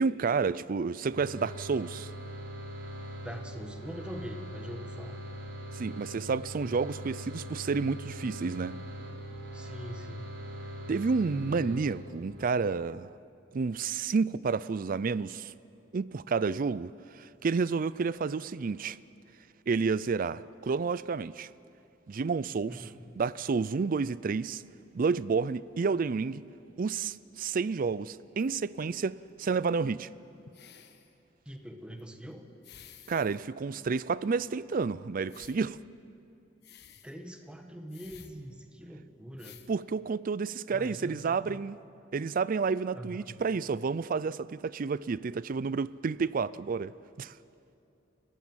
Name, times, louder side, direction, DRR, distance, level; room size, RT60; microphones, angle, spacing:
voice 1, 0.0-2.1 5.7-8.8 10.9-13.1 13.5-15.5 15.9-19.0 19.7-21.5 22.1-22.8 23.2-24.6 24.9-26.4 26.8-30.1 33.1-35.8 39.7-41.8 42.1-46.9 47.2-47.3, right 5 dB, 45° right, 0.4 m, -30 dB
sound 1, 1.1-12.4, equal, 75° right, 4.4 m, -42 dB
voice 2, 3.2-5.2 9.5-10.4 18.1-18.2 22.7-23.1 31.5-32.4 37.0-39.6 40.7-41.6 42.9-43.4, equal, 5° right, 1.7 m, -43 dB
sound 2, 28.4-28.5 29.5-29.9 30.4-31.1 32.0-32.1 32.6-33.4 33.7-33.8 35.3-35.7 36.6-37.2 37.9-38.4 39.0-39.1 39.3-39.7 40.6-40.7, left 8 dB, 60° left, 1.4 m, -53 dB
29.5 x 15.5 x 7.4 m
head